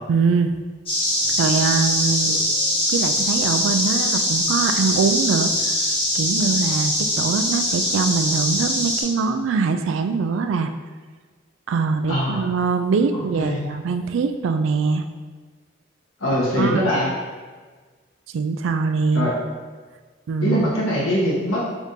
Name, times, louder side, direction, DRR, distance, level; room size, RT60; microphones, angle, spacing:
voice 1, 0.1-0.6 1.2-2.4 2.9-5.7 6.1-10.7 11.7-15.1 16.6-16.8 18.3-19.3 20.3-20.6, right 5 dB, 75° right, 7 dB, 0.3 m, -22 dB
sound 1, 0.9-9.0, left 1 dB, 25° left, 1.2 m, -22 dB
voice 2, 12.1-12.4 13.1-13.6 16.2-17.1 19.1-19.3 20.4-21.6, equal, 85° left, -6 dB, 1.2 m, -22 dB
3.7 x 3.6 x 2.7 m, 1.4 s
head